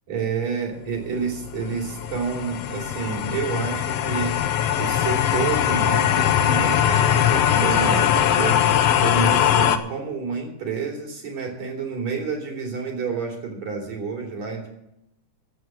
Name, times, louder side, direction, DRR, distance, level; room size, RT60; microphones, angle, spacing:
voice 1, 0.1-4.3 4.8-8.6 9.0-14.7, right 5 dB, 60° right, 0 dB, 4.3 m, -29 dB
sound 1, 0.9-9.8, left 10 dB, 70° left, 1.5 m, -21 dB
13.5 x 7.7 x 7.6 m, 0.82 s
omnidirectional pair, 3.5 m